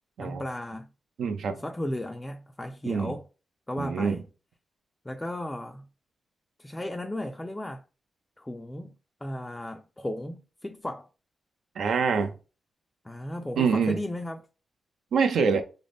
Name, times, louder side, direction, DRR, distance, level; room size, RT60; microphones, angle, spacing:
voice 1, 0.2-0.9 1.6-3.3 3.7-4.3 5.0-5.9 6.6-7.8 8.4-8.9 9.2-11.1 13.0-14.4, left 1 dB, 15° left, 0.3 m, -35 dB
voice 2, 1.2-1.6 2.9-3.1 3.8-4.2 11.8-12.3 13.6-14.0 15.1-15.6, right 5 dB, 80° right, 0.5 m, -25 dB
3.7 x 2.0 x 3.5 m
cardioid pair, 90°, 0 cm